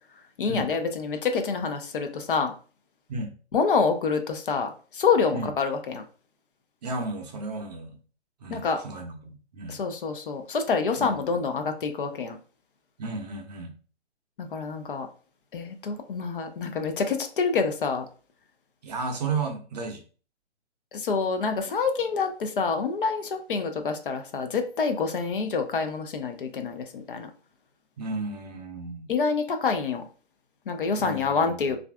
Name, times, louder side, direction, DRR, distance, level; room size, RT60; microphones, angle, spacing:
voice 1, 0.4-2.5 3.5-6.0 8.5-8.8 9.7-12.4 14.4-15.1 15.5-18.1 20.9-27.3 29.1-30.0 30.7-31.8, left 5 dB, 50° left, 6 dB, 0.5 m, -27 dB
voice 2, 6.8-8.0 8.4-9.8 11.0-11.2 13.0-13.7 18.8-20.0 28.0-29.1 31.0-31.8, right 3 dB, 35° right, 3 dB, 0.6 m, -33 dB
3.1 x 2.4 x 2.3 m, 0.38 s
figure-of-eight pair, 135°, 35 cm